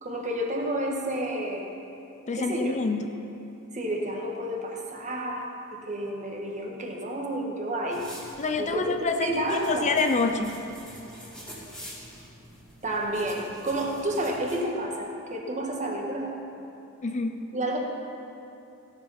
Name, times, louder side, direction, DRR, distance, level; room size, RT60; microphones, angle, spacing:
voice 1, 0.0-1.7 2.3-2.8 3.7-8.1 8.6-9.9 12.8-16.3 17.5-17.8, right 1 dB, 35° right, 0 dB, 1.5 m, -30 dB
voice 2, 2.3-3.1 8.4-10.6 17.0-17.3, left 3 dB, 35° left, 6 dB, 0.5 m, -27 dB
sound 1, 7.9-14.6, equal, 5° left, 2.7 m, -45 dB
16.0 x 7.6 x 5.7 m, 2.8 s
head